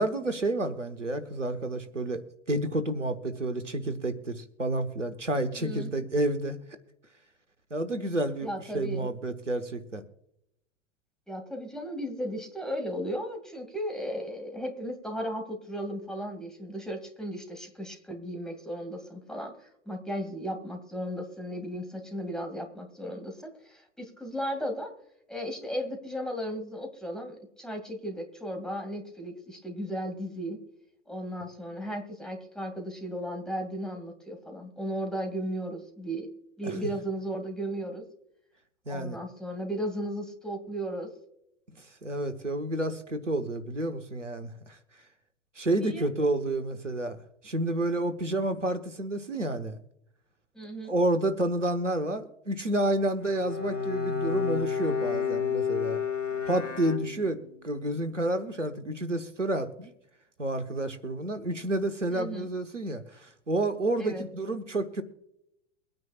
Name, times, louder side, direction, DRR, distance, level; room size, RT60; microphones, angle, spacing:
voice 1, 0.0-6.6 7.7-10.0 36.6-36.7 38.9-39.2 41.8-44.8 45.6-47.2 47.4-49.8 50.9-56.0 56.5-59.9 60.4-65.0, right 1 dB, 90° right, 9 dB, 1.3 m, -30 dB
voice 2, 5.6-5.9 8.4-9.1 11.3-19.5 19.9-24.9 25.3-30.6 31.1-36.3 36.6-38.0 38.9-41.1 45.7-46.1 50.5-50.9 62.1-62.5 64.0-64.3, equal, ahead, 3 dB, 2.4 m, -35 dB
Bowed string instrument, 53.2-57.6, left 6 dB, 90° left, 1.0 m, -30 dB
23.5 x 9.4 x 2.4 m, 0.79 s
figure-of-eight pair, 95°, 36 cm